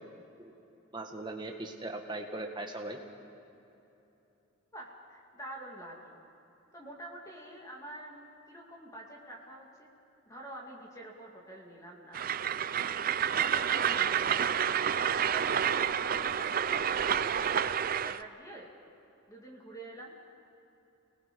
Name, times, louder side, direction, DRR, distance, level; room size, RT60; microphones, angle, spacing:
voice 1, 0.9-3.0, right 2 dB, 20° right, 2 dB, 1.7 m, -39 dB
voice 2, 4.7-6.2 6.7-9.9 10.3-12.2 13.4-14.5 15.1-18.7 19.3-20.1, right 1 dB, 15° left, -2 dB, 2.4 m, -47 dB
Train, 12.1-18.2, right 8 dB, 40° right, 0.4 m, -29 dB
28.5 x 20.0 x 5.4 m, 3.0 s
head